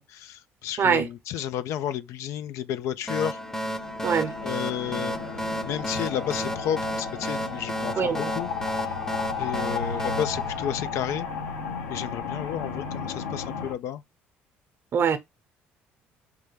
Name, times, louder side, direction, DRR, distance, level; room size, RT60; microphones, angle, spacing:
voice 1, 0.0-3.4 4.4-5.2 5.6-8.5 9.4-11.3 11.9-14.0, left 10 dB, 70° left, 0.5 m, -32 dB
sound 1, 3.1-13.7, left 5 dB, 85° left, 1.3 m, -34 dB
sound 2, 3.1-11.4, equal, 10° left, 0.7 m, -33 dB
voice 2, 4.0-4.3 8.0-8.2 14.9-15.2, right 7 dB, 50° right, 0.9 m, -22 dB
4.9 x 2.2 x 3.2 m
supercardioid pair, 70°, 5 cm